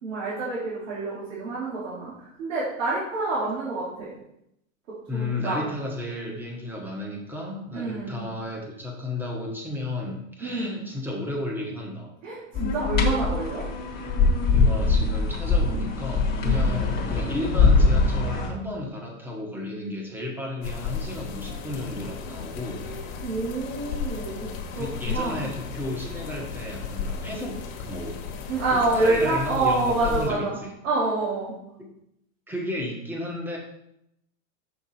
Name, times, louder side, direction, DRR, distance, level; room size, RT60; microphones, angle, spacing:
voice 1, 0.0-4.1 5.1-5.6 7.7-8.3 10.4-10.8 12.2-13.7 16.4-16.9 22.7-25.5 28.5-30.6 30.8-31.5, right 2 dB, 80° right, -6 dB, 2.6 m, -27 dB
voice 2, 5.1-12.1 14.5-22.8 24.7-28.2 28.7-30.7 31.8-31.9 32.5-33.6, left 1 dB, 5° right, 0 dB, 1.2 m, -33 dB
sound 1, 12.5-18.5, left 3 dB, 25° left, 1.2 m, -22 dB
sound 2, 20.6-30.3, left 6 dB, 45° left, 1.2 m, -35 dB
5.9 x 5.8 x 4.3 m, 0.79 s
supercardioid pair, 145°, 39 cm